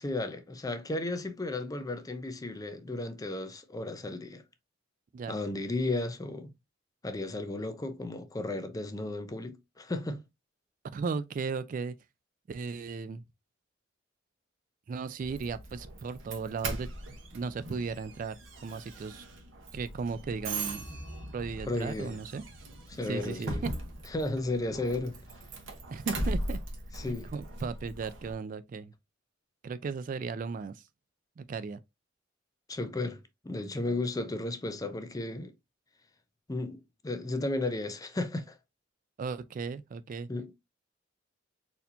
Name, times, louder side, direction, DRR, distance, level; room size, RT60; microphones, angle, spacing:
voice 1, 0.0-4.4 5.3-6.5 7.0-10.2 21.6-22.2 22.9-23.6 24.1-25.2 26.9-27.3 32.7-35.5 36.5-38.6 40.3-40.5, left 2 dB, 20° left, 0.5 m, -34 dB
voice 2, 10.9-11.9 12.5-13.2 14.9-16.9 17.3-19.3 19.7-20.8 21.3-22.4 23.0-23.7 25.9-26.6 27.3-28.9 29.6-30.8 31.4-31.8 39.2-40.3, right 5 dB, 45° right, 0.3 m, -36 dB
Doorbell, 15.2-28.3, right 2 dB, 85° right, 1.0 m, -39 dB
4.2 x 2.8 x 2.6 m
head